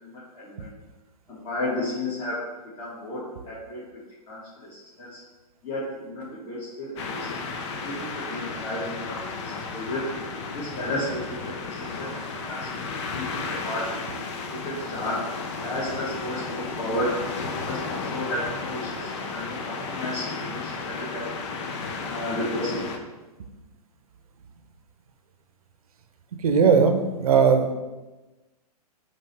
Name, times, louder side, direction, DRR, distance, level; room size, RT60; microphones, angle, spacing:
voice 1, 0.0-0.7 1.3-2.4 2.8-3.9 4.3-5.2 5.6-7.3 7.8-9.2 9.4-10.1 10.5-12.7 13.1-14.2 14.5-15.3 15.6-21.3 22.0-22.9, left 1 dB, 30° left, -8 dB, 1.9 m, -33 dB
sound 1, 7.0-23.0, left 4 dB, 45° left, 0.8 m, -33 dB
voice 2, 26.4-27.7, right 6 dB, 65° right, 6 dB, 0.8 m, -18 dB
8.6 x 3.1 x 3.5 m, 1.1 s
figure-of-eight pair, 115°, 20 cm